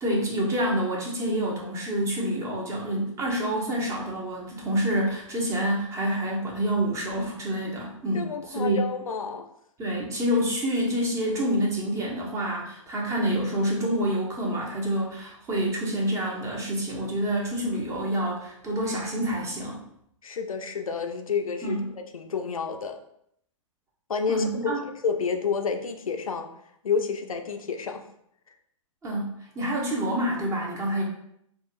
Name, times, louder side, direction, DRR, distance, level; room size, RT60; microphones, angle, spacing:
voice 1, 0.0-8.8 9.8-19.8 21.6-21.9 24.3-24.8 29.0-31.0, right 1 dB, 20° right, -2 dB, 0.8 m, -27 dB
voice 2, 8.1-9.4 20.2-21.8 22.1-23.0 24.1-26.5 26.8-28.0, left 5 dB, 85° left, 5 dB, 0.4 m, -29 dB
3.7 x 2.3 x 2.4 m, 0.72 s
figure-of-eight pair, 110°, 17 cm